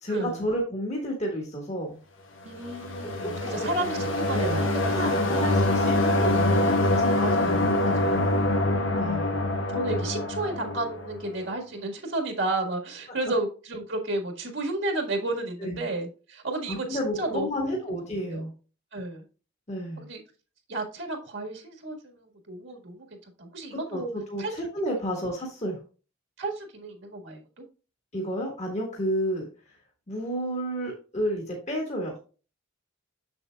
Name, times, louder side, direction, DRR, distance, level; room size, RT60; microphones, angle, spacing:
voice 1, 0.0-2.0 3.0-3.7 4.3-8.0 9.0-9.3 13.2-13.3 15.6-15.9 16.7-18.5 19.7-20.0 23.7-25.8 28.1-29.8 30.1-32.1, equal, 35° left, 0 dB, 1.6 m, -31 dB
voice 2, 2.4-4.9 5.3-5.6 7.2-8.3 9.7-17.8 18.3-18.4 18.9-19.2 20.0-20.2 20.7-24.1 24.4-24.5 26.4-27.6, right 2 dB, 70° right, 2 dB, 1.7 m, -32 dB
sound 1, 2.6-11.3, left 1 dB, 80° left, 1.7 m, -25 dB
7.2 x 7.0 x 2.3 m, 0.35 s
head